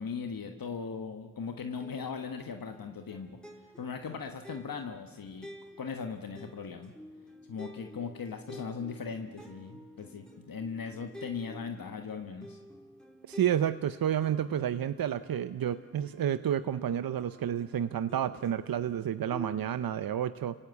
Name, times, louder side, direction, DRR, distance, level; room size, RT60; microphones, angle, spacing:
voice 1, 0.0-3.4 3.8-5.5 5.8-6.9 7.5-12.6, left 5 dB, 80° left, 5 dB, 1.4 m, -39 dB
sound 1, 1.8-19.0 19.3-19.9, equal, ahead, 4.3 m, -51 dB
voice 2, 13.3-20.6, right 10 dB, 85° right, 13 dB, 0.7 m, -30 dB
29.0 x 17.5 x 8.3 m, 1.4 s
cardioid pair, 40°, 34 cm